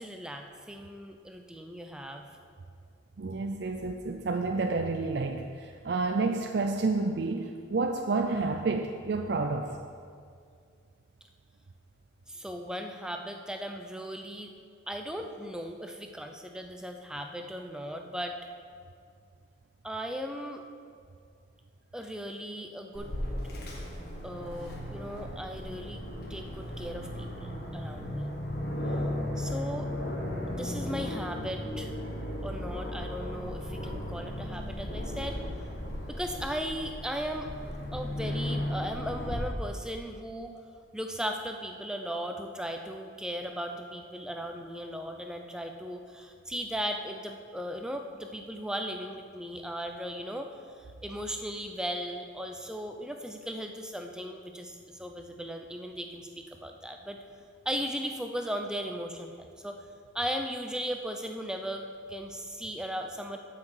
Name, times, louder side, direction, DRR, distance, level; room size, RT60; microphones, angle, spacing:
voice 1, 0.0-2.2 12.3-14.5 14.9-18.4 19.8-20.6 21.9-23.1 24.2-28.3 29.4-29.9 30.5-31.9 32.4-35.4 36.1-37.5 37.9-40.5 40.9-50.5 50.8-57.2 57.7-59.8 60.1-63.4, equal, 5° right, 4 dB, 0.5 m, -37 dB
voice 2, 3.2-9.8, right 3 dB, 55° right, 4 dB, 0.4 m, -30 dB
Aircraft, 22.9-39.4, left 1 dB, 55° left, 1.6 m, -36 dB
sound 1, 28.5-28.7 29.0-29.2 29.4-29.6 30.0-30.2 30.5-30.7 31.0-31.2 31.4-31.6 31.9-32.1 32.5-32.7 33.0-33.2 33.4-33.6 33.9-34.1 34.4-34.6 35.0-35.2 35.5-35.7 35.9-36.1 36.4-36.6 36.8-37.0 37.5-37.7 37.9-38.1, left 3 dB, 80° left, 0.6 m, -48 dB
14.0 x 5.9 x 4.7 m, 2.2 s
head